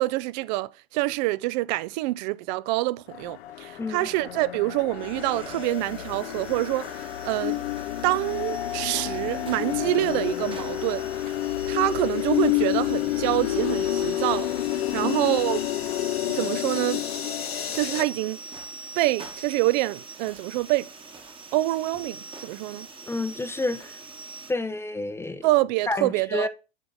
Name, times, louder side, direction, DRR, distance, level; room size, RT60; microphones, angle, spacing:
voice 1, 0.0-7.6 8.0-11.0 11.7-14.5 14.9-15.6 16.3-17.0 17.7-18.4 19.0-20.9 21.5-22.9 25.4-26.5, right 18 dB, 45° right, 0.4 m, -26 dB
sound 1, 3.1-18.0, left 14 dB, 70° left, 0.6 m, -29 dB
voice 2, 3.8-4.1 14.9-15.1 23.1-24.0 24.5-25.5 25.9-26.5, left 2 dB, 10° left, 0.5 m, -29 dB
sound 2, 4.9-24.5, right 3 dB, 15° right, 1.1 m, -43 dB
7.2 x 3.8 x 3.7 m
hypercardioid pair, 95°, 31 cm